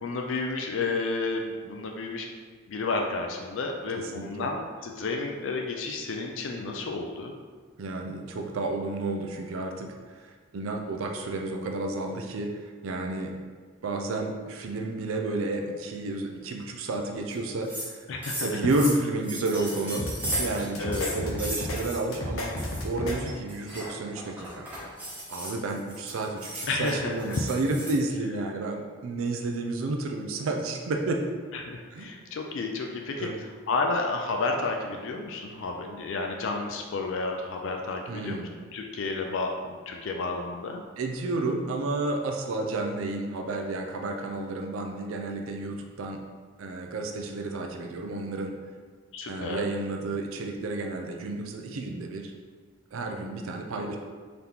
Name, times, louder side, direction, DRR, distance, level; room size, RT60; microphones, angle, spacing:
voice 1, 0.0-2.3 2.7-7.4 18.1-18.6 20.8-21.2 26.7-27.5 31.5-33.3 33.7-40.8 49.1-49.7, left 3 dB, 60° left, 2 dB, 0.4 m, -31 dB
voice 2, 4.0-4.5 7.8-13.3 13.8-18.0 18.4-20.1 20.4-22.5 22.8-24.7 25.3-31.2 31.9-32.1 33.2-33.4 38.1-38.5 41.0-46.2 46.6-48.5 49.3-52.3 52.9-54.0, right 2 dB, 70° right, 2 dB, 0.4 m, -31 dB
sound 1, 17.3-17.4 17.6-17.9 18.2-20.7 20.9-22.0 22.4-22.8 23.2-28.0, right 1 dB, 5° right, 1.1 m, -36 dB
sound 2, 20.0-20.4 20.7-21.8 22.1-23.1, left 1 dB, 80° left, 0.8 m, -32 dB
3.9 x 2.9 x 3.5 m, 1.5 s
head